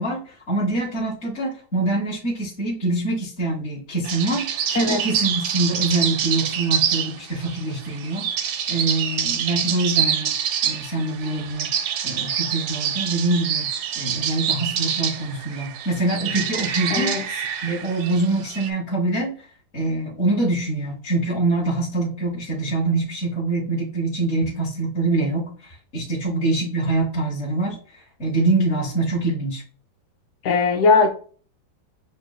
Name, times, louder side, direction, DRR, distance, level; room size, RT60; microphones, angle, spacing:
voice 1, 0.0-10.4 10.6-11.7 12.0-13.7 14.0-17.1 17.6-19.3 19.7-27.8 28.2-29.6, right 2 dB, 45° left, 1.1 m, -24 dB
sound 1, 4.0-18.7, right 8 dB, 70° right, 1.0 m, -26 dB
voice 2, 4.7-5.1 16.9-17.2 30.4-31.1, left 4 dB, 75° left, 0.6 m, -19 dB
6.8 x 2.5 x 2.3 m
omnidirectional pair, 2.0 m